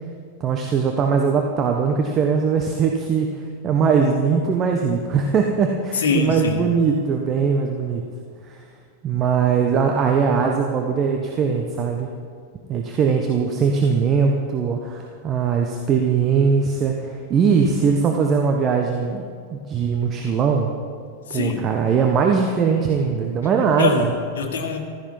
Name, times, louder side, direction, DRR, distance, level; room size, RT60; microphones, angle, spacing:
voice 1, 0.4-8.0 8.5-8.6 9.0-12.1 12.7-19.2 19.5-20.7 21.3-24.1, right 6 dB, 30° right, 2 dB, 1.2 m, -20 dB
voice 2, 5.9-6.6 21.3-21.7 23.8-24.8, left 5 dB, 60° left, 2 dB, 1.9 m, -23 dB
15.0 x 13.5 x 5.4 m, 2.2 s
figure-of-eight pair, 90°, 0 cm